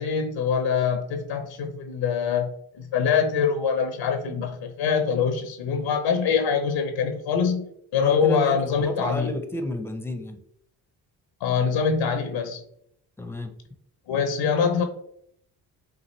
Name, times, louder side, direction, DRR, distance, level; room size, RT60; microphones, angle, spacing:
voice 1, 0.0-9.3 11.4-12.6 14.1-14.8, left 6 dB, 75° left, 7 dB, 0.8 m, -24 dB
voice 2, 7.9-10.4 13.2-13.5, left 1 dB, 5° left, 7 dB, 0.7 m, -32 dB
6.1 x 2.4 x 3.1 m, 0.71 s
supercardioid pair, 65°, 45 cm